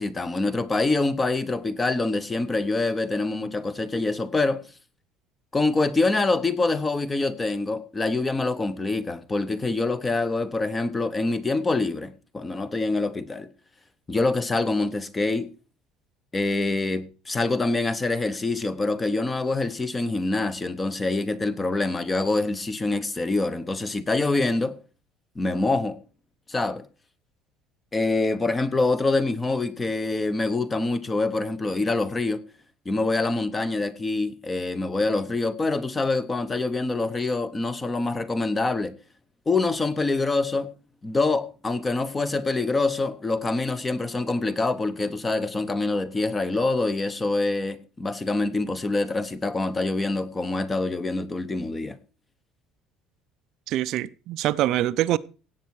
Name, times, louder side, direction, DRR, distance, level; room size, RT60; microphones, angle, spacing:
voice 1, 0.0-4.6 5.5-13.5 14.1-15.5 16.3-24.8 25.4-26.0 26.5-26.8 27.9-32.4 32.8-38.9 39.5-40.7 41.0-52.0, left 3 dB, 15° left, 0.9 m, -25 dB
voice 2, 53.7-55.2, right 14 dB, 50° right, 0.5 m, -24 dB
16.5 x 8.3 x 4.7 m
cardioid pair, 165°, 0 cm